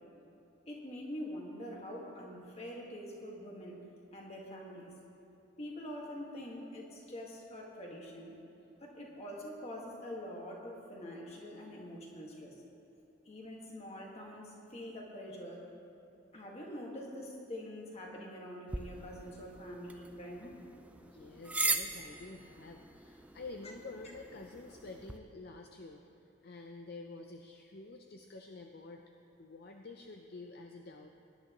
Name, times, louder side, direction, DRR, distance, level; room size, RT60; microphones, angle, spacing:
voice 1, 0.7-3.8 4.1-4.9 5.6-8.4 8.8-12.6 13.2-15.6 16.3-20.5, equal, 30° left, -2 dB, 1.7 m, -45 dB
sound 1, 18.7-25.2, right 3 dB, 5° right, 0.3 m, -40 dB
voice 2, 21.0-26.0 26.4-29.0 29.4-31.1, left 3 dB, 50° left, 4 dB, 0.5 m, -49 dB
19.0 x 10.5 x 3.0 m, 2.8 s
head